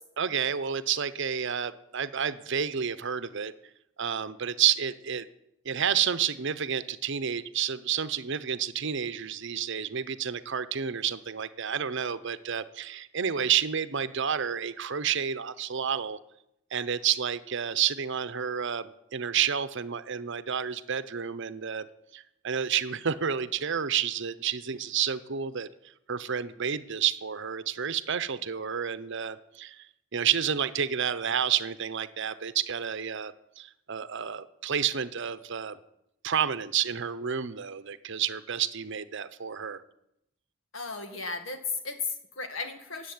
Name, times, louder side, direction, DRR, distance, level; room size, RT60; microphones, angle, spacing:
voice 1, 0.2-3.5 4.0-5.3 5.6-16.2 16.7-21.9 22.1-25.7 26.1-35.8 36.2-39.8, right 8 dB, 65° right, 14 dB, 0.8 m, -30 dB
voice 2, 40.7-43.1, left 4 dB, 70° left, 7 dB, 2.1 m, -35 dB
14.0 x 8.3 x 9.5 m, 0.81 s
head